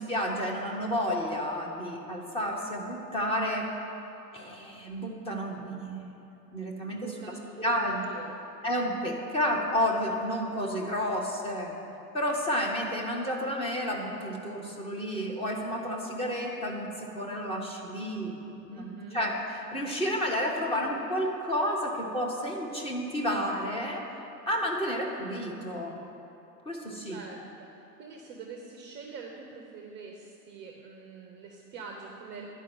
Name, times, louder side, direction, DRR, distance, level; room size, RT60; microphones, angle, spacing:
voice 1, 0.0-3.7 4.3-6.1 6.5-7.2 7.6-8.0 8.6-11.8 12.1-18.8 19.1-24.0 24.5-26.0 26.6-27.2, equal, 10° left, 0 dB, 1.0 m, -31 dB
voice 2, 6.9-8.4 18.7-19.2 27.0-32.5, right 4 dB, 20° right, 1 dB, 0.6 m, -45 dB
11.0 x 4.6 x 7.5 m, 3.0 s
figure-of-eight pair, 105°, 50 cm